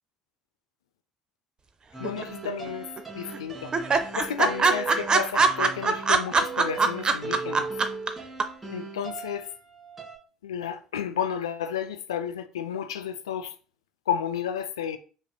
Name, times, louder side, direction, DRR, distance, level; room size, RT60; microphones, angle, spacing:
sound 1, 1.9-10.2, right 4 dB, 15° right, 1.8 m, -39 dB
voice 1, 2.0-2.9 3.2-3.7 4.2-7.7 8.7-9.5 10.4-13.5 14.1-15.0, left 8 dB, 80° left, 0.4 m, -32 dB
sound 2, 2.0-2.7 3.0-3.1 3.3-3.4 3.7-8.1 8.4-8.5, right 4 dB, 30° right, 0.5 m, -22 dB
5.4 x 3.0 x 2.2 m
figure-of-eight pair, 55°, 3 cm